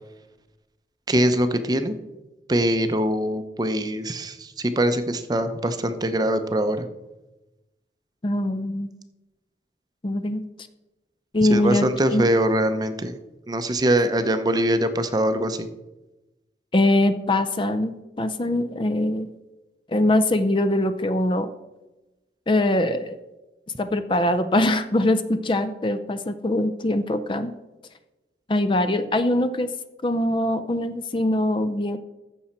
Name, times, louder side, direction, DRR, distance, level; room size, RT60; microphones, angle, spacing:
voice 1, 1.1-2.0 2.5-6.9 11.4-13.2 13.5-15.7, right 1 dB, 20° right, 9 dB, 0.6 m, -23 dB
voice 2, 8.2-8.9 10.0-10.4 11.3-12.2 16.7-19.3 19.9-21.5 22.5-23.2 23.8-27.5 28.5-29.7 30.0-32.0, left 1 dB, 30° left, 11 dB, 0.4 m, -22 dB
14.5 x 6.3 x 4.3 m, 1.1 s
head